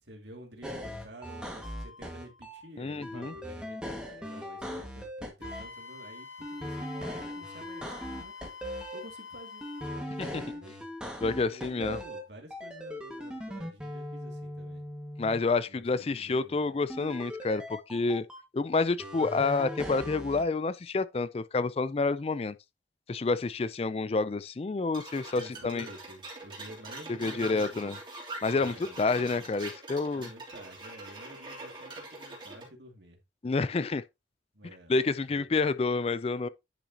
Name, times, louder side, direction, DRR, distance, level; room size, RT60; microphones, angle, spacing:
voice 1, 0.0-10.8 11.4-14.8 15.7-16.8 25.3-27.7 28.5-29.5 30.1-33.2 34.5-35.5, right 1 dB, 70° right, 2.4 m, -50 dB
sound 1, 0.6-2.6 3.0-5.7 6.4-9.0 9.6-12.2 12.5-15.4 16.9-18.4 19.0-20.4, equal, 5° right, 1.7 m, -39 dB
voice 2, 2.8-3.3 10.2-10.3 11.2-12.0 15.2-18.2 18.5-22.5 23.1-25.9 27.2-28.0 28.4-30.3 33.4-34.0 34.9-36.5, left 3 dB, 35° left, 0.4 m, -29 dB
Wind instrument woodwind instrument, 5.4-10.1, left 5 dB, 80° left, 1.9 m, -46 dB
sound 2, 24.9-32.7, right 2 dB, 25° right, 3.1 m, -43 dB
10.0 x 6.1 x 2.8 m
head